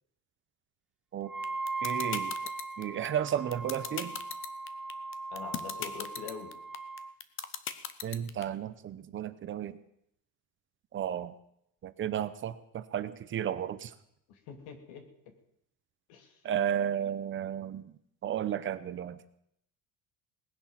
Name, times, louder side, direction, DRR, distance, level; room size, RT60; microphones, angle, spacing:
Wind instrument woodwind instrument, 1.2-7.1, right 3 dB, ahead, 1.3 m, -38 dB
sound 1, 1.4-8.4, left 9 dB, 35° left, 1.0 m, -36 dB
voice 1, 1.8-2.3 2.8-4.2 8.0-9.8 10.9-11.3 11.8-13.9 16.4-17.8 18.2-19.2, right 10 dB, 35° right, 13 dB, 0.8 m, -33 dB
voice 2, 5.3-6.5 14.3-15.0 16.1-16.4, left 6 dB, 85° left, 6 dB, 3.2 m, -44 dB
19.0 x 10.0 x 7.4 m, 0.74 s
cardioid pair, 165°, 36 cm